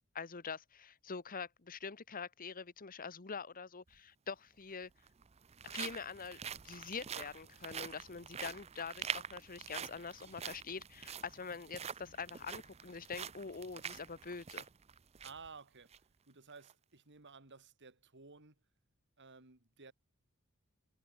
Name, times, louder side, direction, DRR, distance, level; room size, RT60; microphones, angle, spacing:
voice 1, 0.1-4.9 5.6-14.7, left 5 dB, 40° left, 1.1 m, -45 dB
sound 1, 3.9-4.0 4.9-15.5 15.9-16.0 16.5-16.7, right 7 dB, 30° right, 0.5 m, -46 dB
voice 2, 15.2-16.0 16.3-18.6 19.2-19.9, right 4 dB, 55° right, 2.8 m, -55 dB
head